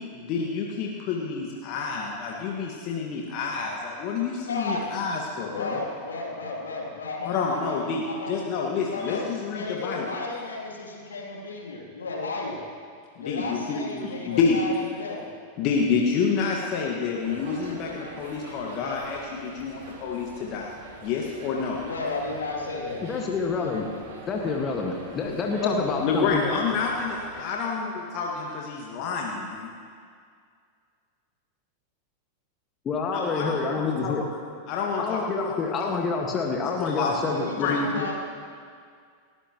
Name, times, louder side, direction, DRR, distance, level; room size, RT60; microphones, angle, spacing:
voice 1, 0.0-5.8 7.2-10.1 13.1-14.6 15.6-20.7 21.0-21.8 25.6-29.7 33.1-34.1 34.7-35.9 36.8-37.2 37.6-37.8, left 5 dB, 40° left, -1 dB, 1.8 m, -28 dB
voice 2, 4.4-4.8 5.5-8.4 8.9-12.6 13.2-14.7 15.0-15.3 21.8-23.0 37.2-38.2, left 3 dB, 70° left, -2 dB, 3.0 m, -33 dB
sound 1, 17.2-27.4, right 3 dB, 55° right, 3.2 m, -45 dB
voice 3, 23.0-23.9 24.3-26.6 32.8-34.2 35.0-38.1, left 4 dB, 25° left, 0 dB, 1.7 m, -28 dB
29.5 x 13.5 x 3.1 m, 2.2 s
figure-of-eight pair, 90°, 0 cm